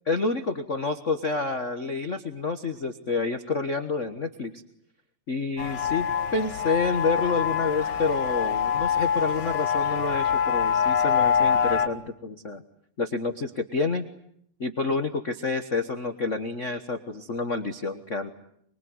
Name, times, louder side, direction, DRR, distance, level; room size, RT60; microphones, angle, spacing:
voice 1, 0.1-4.5 5.3-6.1 6.3-12.6 13.0-14.1 14.6-18.3, left 4 dB, 75° left, 8 dB, 0.6 m, -28 dB
sound 1, 5.6-11.9, left 7 dB, 50° left, 1.4 m, -25 dB
25.0 x 23.5 x 9.5 m, 0.70 s
omnidirectional pair, 3.6 m